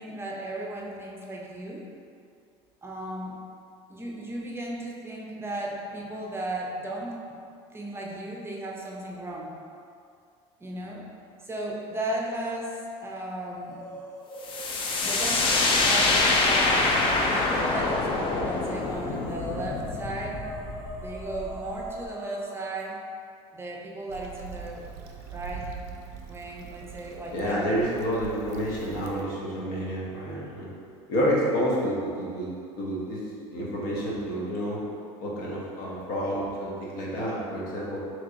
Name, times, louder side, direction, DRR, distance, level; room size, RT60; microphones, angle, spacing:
voice 1, 0.0-1.9 2.8-3.4 3.9-7.4 7.7-9.5 10.6-11.1 11.4-13.8 15.0-16.9 17.2-20.4 21.0-23.0 23.5-24.9 25.3-25.7 26.3-27.8, right 1 dB, 15° right, -2 dB, 0.5 m, -35 dB
sound 1, 12.1-12.7 13.0-14.9 15.6-22.8, equal, 55° left, 1.5 m, -42 dB
sound 2, 14.4-22.0, left 3 dB, 35° left, 0.5 m, -25 dB
Stream / Traffic noise roadway noise / Trickle dribble, 24.1-29.2, right 6 dB, 85° right, 0.4 m, -42 dB
voice 2, 27.3-30.7 31.1-32.5 32.8-33.2 33.5-34.8 35.2-38.0, equal, 70° left, -5 dB, 1.0 m, -29 dB
4.3 x 3.1 x 2.6 m, 2.4 s
supercardioid pair, 110°, 14 cm